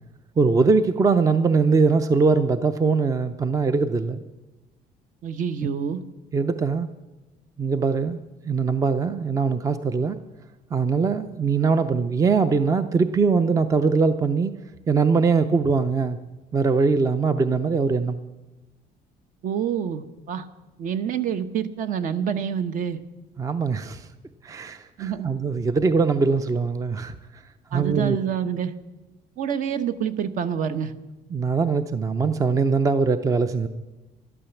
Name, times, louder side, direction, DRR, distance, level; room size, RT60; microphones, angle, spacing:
voice 1, 0.4-4.2 6.3-6.9 7.6-10.2 10.7-14.5 14.9-16.2 16.5-18.2 23.4-24.1 24.4-27.2 27.7-28.2 31.3-33.7, right 4 dB, 20° right, 12 dB, 0.5 m, -22 dB
voice 2, 5.2-6.0 19.4-20.5 20.8-23.0 25.0-25.3 27.7-28.7 29.4-30.9, right 8 dB, 50° right, 11 dB, 0.9 m, -27 dB
12.0 x 12.0 x 7.0 m, 1.1 s
cardioid pair, 160°, 17 cm